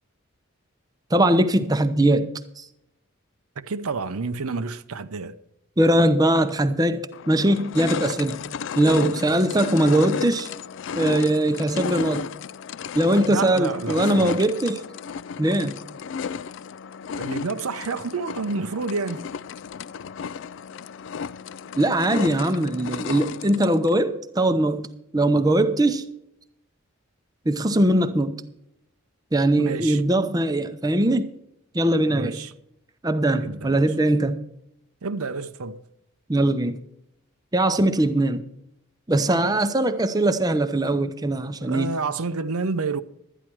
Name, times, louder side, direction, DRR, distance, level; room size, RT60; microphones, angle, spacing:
voice 1, 1.1-2.3 2.6-2.7 5.8-8.4 8.7-10.5 11.0-12.3 12.9-14.8 15.4-15.8 21.8-24.9 25.1-26.1 27.5-28.4 29.3-31.3 31.7-32.4 33.0-34.4 36.3-36.8 37.5-38.4 39.1-41.9, right 1 dB, 15° right, 0.6 m, -21 dB
voice 2, 3.6-5.4 13.3-14.4 17.1-19.3 29.6-30.0 32.1-32.5 33.4-33.9 35.0-35.8 41.6-43.0, right 4 dB, 90° right, 0.7 m, -29 dB
sound 1, 6.5-6.6 7.1-23.9, left 6 dB, 55° left, 0.3 m, -33 dB
12.5 x 10.0 x 4.6 m
head